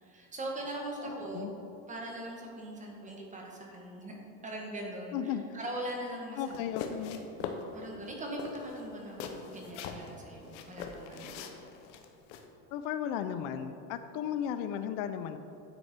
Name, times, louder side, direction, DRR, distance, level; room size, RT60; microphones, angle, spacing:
voice 1, 0.0-1.5 1.9-4.2 4.4-6.6 7.7-11.4, right 1 dB, 20° right, -1 dB, 1.5 m, -41 dB
voice 2, 1.0-1.5 5.1-5.6 6.4-7.2 12.7-15.4, left 9 dB, 65° left, 10 dB, 0.5 m, -35 dB
sound 1, 6.5-7.6 8.0-8.1 8.4-10.1 10.5-12.5, left 6 dB, 85° left, 0.8 m, -41 dB
9.6 x 4.6 x 4.3 m, 2.9 s
supercardioid pair, 120°, 34 cm